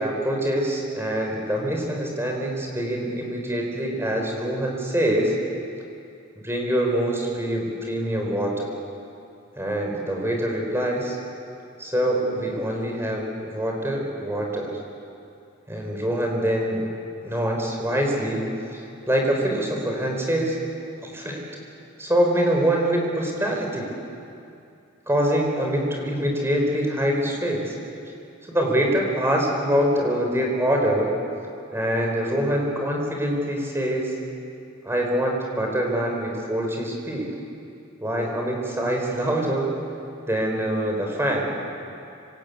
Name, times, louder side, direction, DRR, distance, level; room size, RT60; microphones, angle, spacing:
voice 1, 0.0-5.3 6.4-8.7 9.5-11.2 11.8-14.7 15.7-16.8 17.2-20.6 21.0-21.4 22.0-23.9 25.1-27.7 28.5-31.1 31.7-34.2 34.8-37.3 38.0-39.7 40.3-41.5, right 1 dB, 10° right, 0 dB, 4.5 m, -24 dB
27.0 x 26.0 x 8.4 m, 2.7 s
head